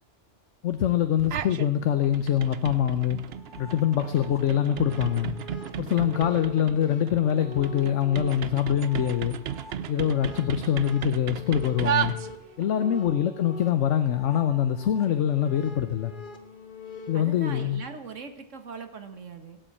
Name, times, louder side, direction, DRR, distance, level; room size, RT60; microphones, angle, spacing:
voice 1, 0.6-3.2 3.6-5.3 5.8-9.4 9.9-12.1 12.6-16.1 17.1-17.8, left 10 dB, 80° left, 9 dB, 1.2 m, -24 dB
sound 1, 1.2-1.7 2.0-12.7, right 9 dB, 60° right, 0.9 m, -34 dB
sound 2, 3.3-17.7, left 2 dB, 45° left, 1.5 m, -44 dB
voice 2, 6.0-6.4 12.7-13.1 17.1-19.6, right 5 dB, 90° right, 8 dB, 1.8 m, -41 dB
17.5 x 7.9 x 8.7 m, 0.88 s
omnidirectional pair, 1.2 m